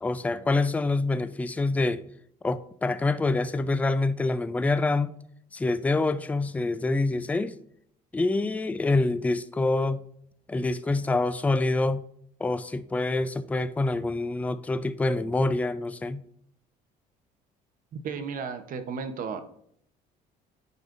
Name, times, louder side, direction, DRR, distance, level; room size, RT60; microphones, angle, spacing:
voice 1, 0.0-2.0 2.4-5.1 5.5-7.6 8.1-10.0 10.5-12.0 12.4-16.2, left 2 dB, 10° left, 0.3 m, -26 dB
voice 2, 18.0-19.4, right 5 dB, 55° right, 0.8 m, -33 dB
9.4 x 5.0 x 2.5 m
cardioid pair, 110°, 17 cm